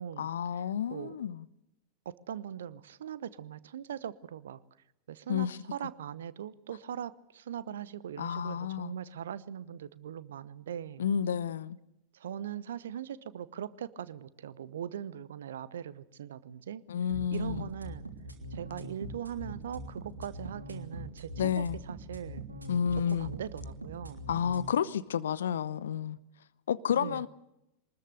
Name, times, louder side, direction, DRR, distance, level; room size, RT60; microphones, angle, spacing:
voice 1, 0.2-1.4 5.3-5.6 8.2-8.9 11.0-11.8 16.9-17.7 21.4-21.8 22.7-23.3 24.3-26.2 26.7-27.3, left 8 dB, 65° left, 0.8 m, -30 dB
voice 2, 2.0-4.6 5.1-11.0 12.1-16.8 17.3-18.1 18.5-22.5 23.1-24.3 27.0-27.3, right 9 dB, 60° right, 0.9 m, -40 dB
sound 1, 17.1-24.7, right 1 dB, 80° right, 3.1 m, -42 dB
23.0 x 20.5 x 6.7 m
figure-of-eight pair, 90°, 0 cm